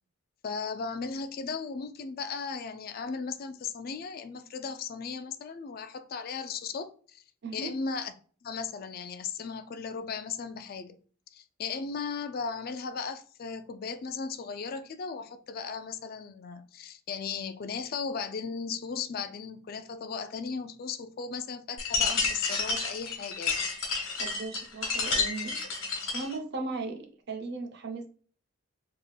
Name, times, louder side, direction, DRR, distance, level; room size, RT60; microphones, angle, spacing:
voice 1, 0.4-7.2 7.5-8.1 8.4-11.0 11.3-23.7, left 5 dB, 45° left, 0.3 m, -36 dB
sound 1, 21.8-26.4, left 4 dB, 70° left, 1.1 m, -30 dB
voice 2, 24.2-25.6 26.1-28.1, right 3 dB, 50° right, 0.6 m, -37 dB
3.5 x 2.3 x 3.2 m
head